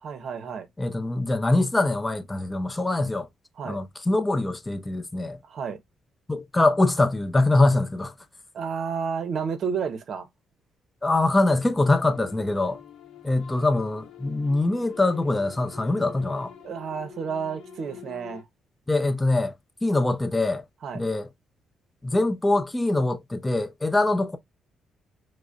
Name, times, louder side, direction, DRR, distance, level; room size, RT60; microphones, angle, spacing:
voice 1, 0.0-0.7 3.6-3.8 5.4-5.8 8.5-10.3 16.6-18.4 20.8-21.0, right 6 dB, 60° right, 0.7 m, -31 dB
voice 2, 0.8-3.3 3.7-5.4 6.3-8.1 11.0-12.8 13.2-16.5 18.9-19.5 19.8-20.6 20.9-21.3 22.0-24.4, left 2 dB, 15° left, 0.5 m, -23 dB
sound 1, 11.4-18.4, left 7 dB, 75° left, 0.8 m, -46 dB
4.8 x 2.1 x 2.4 m
cardioid pair, 90°, 0 cm